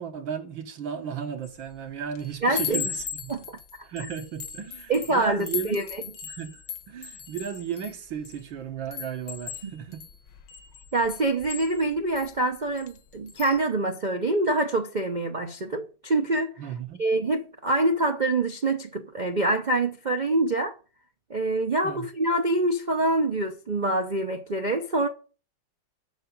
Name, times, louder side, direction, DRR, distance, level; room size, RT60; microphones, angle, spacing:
voice 1, 0.0-3.3 3.8-5.8 6.2-10.0 16.6-17.0 21.8-22.1, right 8 dB, 80° right, 2.2 m, -35 dB
Chime, 1.4-1.7 2.1-8.4 8.9-12.3 12.8-13.0 13.3-13.6, left 7 dB, 70° left, 1.8 m, -37 dB
voice 2, 2.4-2.8 3.3-3.6 4.9-5.8 9.6-9.7 10.9-16.5 17.0-20.8 21.3-25.1, right 2 dB, 60° right, 0.4 m, -25 dB
7.7 x 7.0 x 7.8 m
omnidirectional pair, 2.1 m